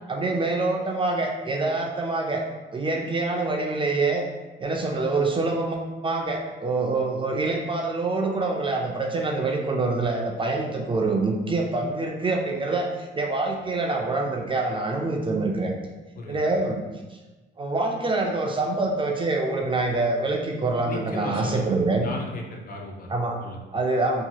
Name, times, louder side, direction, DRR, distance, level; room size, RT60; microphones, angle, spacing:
voice 1, 0.1-2.4 2.7-4.3 4.6-15.7 16.3-16.8 17.6-22.1 23.1-23.4 23.7-24.2, right 3 dB, 25° right, 1 dB, 0.3 m, -25 dB
voice 2, 20.8-21.7 22.0-23.1 23.4-23.6, left 2 dB, 45° left, 1 dB, 0.5 m, -35 dB
2.8 x 2.8 x 2.3 m, 1.2 s
cardioid pair, 90°, 20 cm